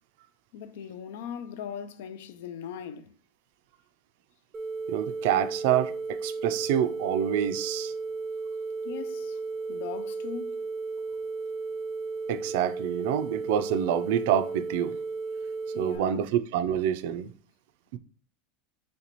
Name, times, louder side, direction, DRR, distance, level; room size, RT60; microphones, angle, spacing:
voice 1, 0.5-3.1 8.8-9.4 9.7-10.5 15.7-16.2, left 8 dB, 75° left, 0.4 m, -39 dB
sound 1, 4.5-16.0, right 4 dB, 5° right, 0.6 m, -34 dB
voice 2, 4.9-7.9 12.3-14.9 15.8-17.3 17.9-18.0, right 10 dB, 60° right, 0.3 m, -27 dB
4.0 x 3.2 x 2.9 m
supercardioid pair, 175°, 0 cm